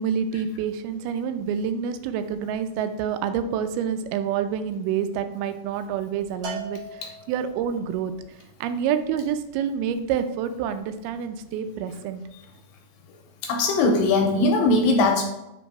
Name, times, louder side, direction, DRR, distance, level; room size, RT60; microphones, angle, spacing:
voice 1, 0.0-7.0 7.3-8.1 8.6-12.2, right 8 dB, 90° right, 9 dB, 2.5 m, -27 dB
Bell, 6.4-7.8, right 1 dB, 65° right, 2.1 m, -38 dB
voice 2, 13.4-15.2, left 2 dB, 80° left, 3 dB, 2.1 m, -20 dB
5.1 x 4.0 x 4.6 m, 0.89 s
omnidirectional pair, 4.4 m